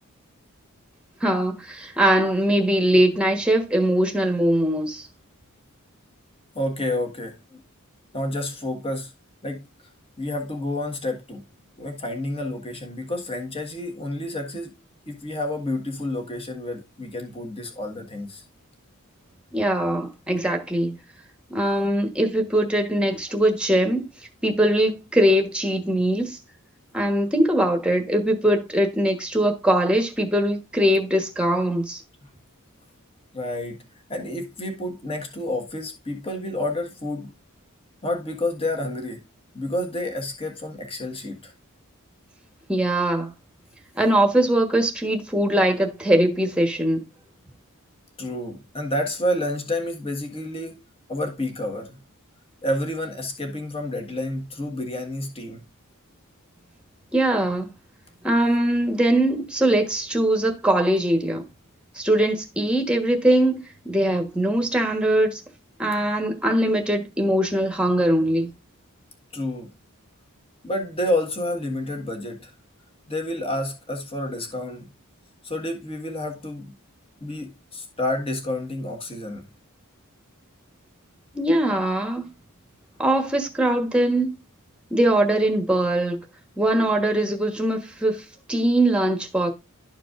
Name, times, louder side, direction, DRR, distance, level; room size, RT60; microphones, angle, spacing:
voice 1, 1.2-5.1 19.5-21.0 21.5-24.0 24.4-26.4 26.9-32.0 42.7-43.3 43.9-47.0 57.1-57.7 58.2-61.5 61.9-65.4 65.8-68.5 81.3-82.3 83.0-84.3 84.9-86.2 86.6-88.2 88.5-89.5, right 1 dB, 5° right, 1.3 m, -21 dB
voice 2, 6.5-7.6 8.1-9.1 9.4-9.6 10.2-11.4 11.8-14.7 15.1-18.4 33.3-33.8 34.1-37.3 38.0-39.2 39.5-41.5 48.2-50.8 51.1-52.0 52.6-55.6 69.3-69.7 70.6-72.5 73.1-74.9 75.4-76.7 77.2-79.4, left 1 dB, 25° left, 1.6 m, -29 dB
12.5 x 4.6 x 2.5 m
head